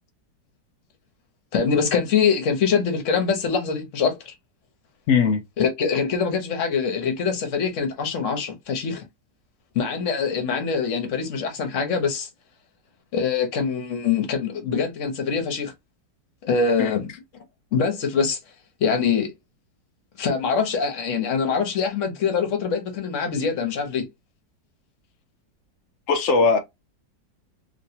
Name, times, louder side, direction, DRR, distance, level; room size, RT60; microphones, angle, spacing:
voice 1, 1.5-4.3 5.6-9.0 9.7-12.3 13.1-15.7 16.4-17.1 17.7-18.4 18.8-19.3 20.2-24.1, left 6 dB, 50° left, 1.0 m, -24 dB
voice 2, 5.1-5.4 16.8-16.9 26.1-26.6, left 5 dB, 75° left, 0.7 m, -19 dB
3.0 x 2.9 x 2.7 m
omnidirectional pair, 2.0 m